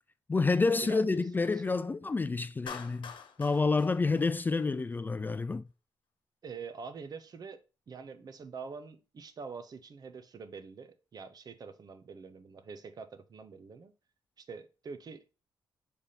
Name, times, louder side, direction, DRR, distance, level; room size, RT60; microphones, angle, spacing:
voice 1, 0.3-3.1 3.4-5.6, left 3 dB, 20° left, 0.3 m, -28 dB
voice 2, 0.8-1.2 1.5-1.6 6.4-7.6 7.9-13.9 14.4-15.4, right 5 dB, 50° right, 0.9 m, -45 dB
Clapping, 2.7-5.0, left 7 dB, 70° left, 1.2 m, -46 dB
7.1 x 3.5 x 4.1 m
cardioid pair, 90°, 9 cm